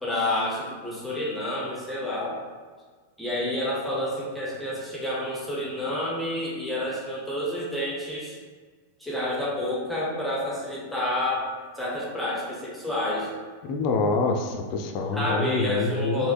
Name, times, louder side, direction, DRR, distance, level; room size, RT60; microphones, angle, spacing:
voice 1, 0.0-2.4 3.2-8.4 9.0-11.5 11.7-13.3 15.1-16.3, left 1 dB, ahead, -6 dB, 0.7 m, -29 dB
voice 2, 13.7-16.3, left 3 dB, 40° left, 4 dB, 0.4 m, -26 dB
3.3 x 2.5 x 2.3 m, 1.5 s
figure-of-eight pair, 90°, 0 cm